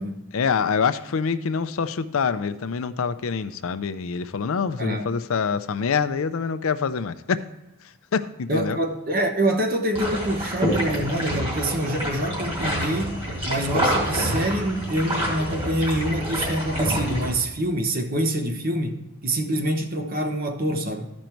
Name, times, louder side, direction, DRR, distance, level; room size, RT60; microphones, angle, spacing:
voice 1, 0.3-7.4 8.1-8.8, left 6 dB, 75° left, 0.5 m, -25 dB
voice 2, 8.5-21.1, right 1 dB, 40° right, 1.0 m, -26 dB
sound 1, 9.9-17.3, equal, 25° right, 2.3 m, -27 dB
13.0 x 5.2 x 4.5 m
head